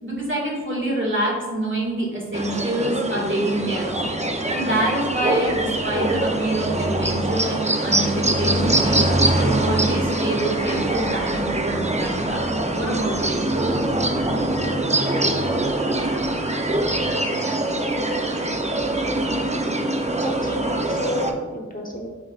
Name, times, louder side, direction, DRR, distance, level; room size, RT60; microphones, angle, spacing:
voice 1, 0.0-4.1 4.5-9.0 9.3-13.4, right 1 dB, 45° right, -3 dB, 2.0 m, -26 dB
sound 1, 2.3-21.3, right 1 dB, 25° right, 0.6 m, -23 dB
voice 2, 20.1-22.1, left 1 dB, 30° left, -1 dB, 0.9 m, -31 dB
9.9 x 4.9 x 2.4 m, 1.4 s
wide cardioid pair, 40°, 29 cm